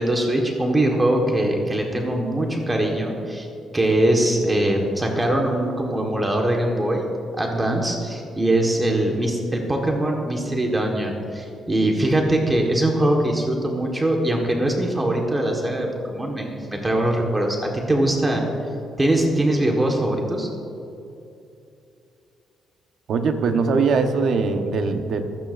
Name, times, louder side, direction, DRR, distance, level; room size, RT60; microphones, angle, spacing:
voice 1, 0.0-3.5 3.7-7.1 7.4-18.4 19.0-20.5, right 1 dB, 15° right, 1 dB, 1.5 m, -22 dB
voice 2, 23.1-25.2, right 4 dB, 65° right, 6 dB, 1.1 m, -21 dB
25.5 x 9.3 x 2.6 m, 2.7 s
cardioid pair, 90°, 0 cm